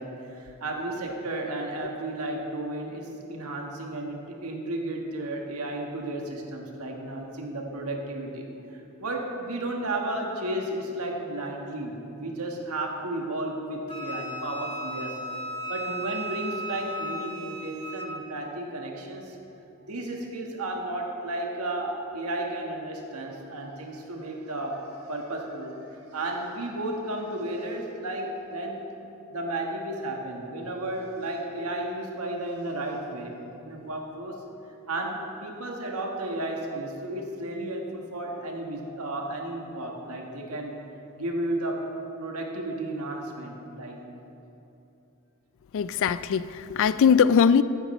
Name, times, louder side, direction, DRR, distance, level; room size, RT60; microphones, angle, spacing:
voice 1, 0.0-8.4 8.7-15.1 15.7-19.4 19.9-25.8 26.1-28.8 29.3-34.4 34.9-40.7 41.2-41.9 42.2-44.0, right 1 dB, 80° right, 1.5 m, -33 dB
Wind instrument woodwind instrument, 13.9-18.1, equal, 25° left, 1.2 m, -35 dB
voice 2, 45.7-47.6, left 7 dB, 60° left, 0.3 m, -21 dB
14.5 x 9.9 x 3.2 m
head